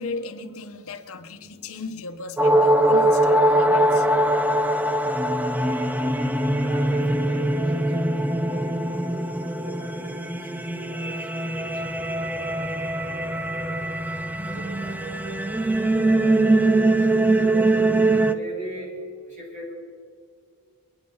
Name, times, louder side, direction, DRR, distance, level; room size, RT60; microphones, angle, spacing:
voice 1, 0.0-4.1, left 3 dB, 65° left, 1.2 m, -36 dB
sound 1, 2.4-18.3, right 1 dB, 5° right, 0.5 m, -22 dB
voice 2, 6.6-17.7 18.1-18.9 19.3-19.7, right 1 dB, 35° right, 4.9 m, -40 dB
28.0 x 10.0 x 4.0 m
head